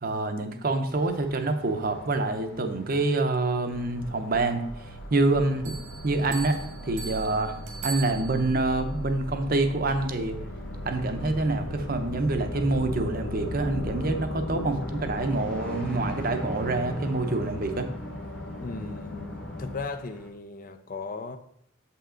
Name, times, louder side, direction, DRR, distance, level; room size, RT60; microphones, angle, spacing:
voice 1, 0.0-4.6 5.1-5.7 6.0-7.5 7.8-10.3 10.8-17.9, right 2 dB, 45° right, 7 dB, 0.7 m, -26 dB
sound 1, 0.9-20.3, equal, 5° left, 0.9 m, -47 dB
sound 2, 3.7-19.8, left 1 dB, 55° left, 1.0 m, -37 dB
sound 3, 5.6-8.7, right 5 dB, 90° right, 1.8 m, -40 dB
voice 2, 18.6-21.4, left 4 dB, 40° left, 9 dB, 0.4 m, -37 dB
7.4 x 5.6 x 3.8 m, 0.72 s
head